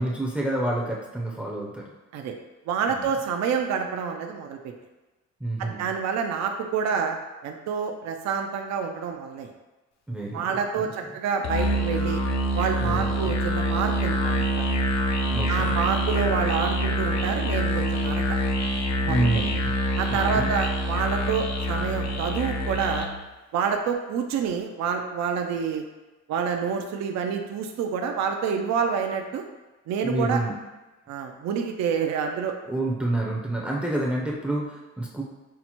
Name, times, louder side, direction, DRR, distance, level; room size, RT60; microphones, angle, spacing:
voice 1, 0.0-1.9 2.9-3.1 5.4-5.9 10.1-11.1 12.8-13.3 15.3-15.8 19.0-19.7 20.1-20.6 30.0-30.5 32.6-35.2, right 1 dB, 5° right, -2 dB, 0.5 m, -28 dB
voice 2, 2.7-4.6 5.6-7.2 7.4-9.5 10.3-12.2 12.5-14.4 15.5-18.2 19.0-19.4 20.0-23.1 23.5-25.8 26.3-29.4 29.9-30.4 31.1-32.6, right 6 dB, 60° right, 4 dB, 0.4 m, -28 dB
Musical instrument, 11.4-23.2, equal, 65° left, 0.6 m, -26 dB
5.7 x 2.0 x 2.9 m, 1.2 s
cardioid pair, 90°, 30 cm